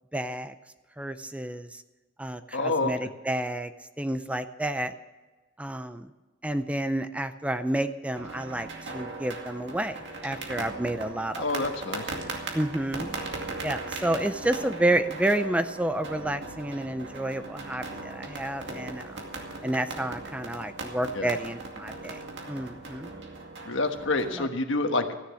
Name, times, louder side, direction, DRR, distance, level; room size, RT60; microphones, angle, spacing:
voice 1, 0.1-0.5 1.0-1.8 2.2-3.7 4.0-4.9 5.6-6.1 6.4-11.4 12.5-13.1 13.6-19.2 19.6-22.2 22.5-23.1 24.3-24.5, right 1 dB, 5° right, 10 dB, 0.5 m, -30 dB
voice 2, 2.5-2.9 11.4-12.0 21.1-21.3 23.6-25.2, left 2 dB, 75° left, 6 dB, 1.3 m, -27 dB
sound 1, 8.1-24.4, right 2 dB, 65° right, 2.3 m, -39 dB
14.5 x 10.0 x 6.3 m, 1.2 s
head